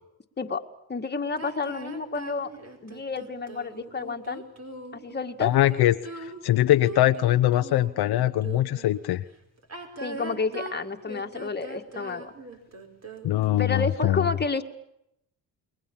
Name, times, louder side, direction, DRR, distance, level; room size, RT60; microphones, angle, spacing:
voice 1, 0.9-2.5 2.8-4.4 4.9-5.5 10.0-12.3 13.5-14.6, left 4 dB, 25° left, 5 dB, 2.0 m, -30 dB
sound 1, 1.4-8.9 9.6-13.6, right 2 dB, 40° right, 5.1 m, -41 dB
voice 2, 5.4-9.2 13.2-14.2, left 13 dB, 70° left, 9 dB, 0.9 m, -22 dB
29.5 x 21.5 x 7.3 m, 0.82 s
cardioid pair, 95°, 39 cm